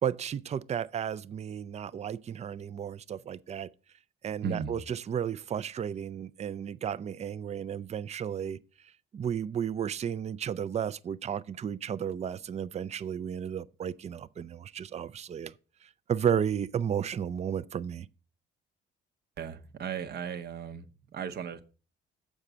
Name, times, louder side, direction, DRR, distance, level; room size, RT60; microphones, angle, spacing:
voice 1, 0.0-3.7 4.2-8.6 9.1-15.5 15.8-18.1, right 8 dB, 35° right, 0.4 m, -33 dB
voice 2, 4.4-4.8 19.4-20.9 21.1-21.6, right 7 dB, 55° right, 0.8 m, -36 dB
7.2 x 4.9 x 6.6 m
cardioid pair, 90°, 20 cm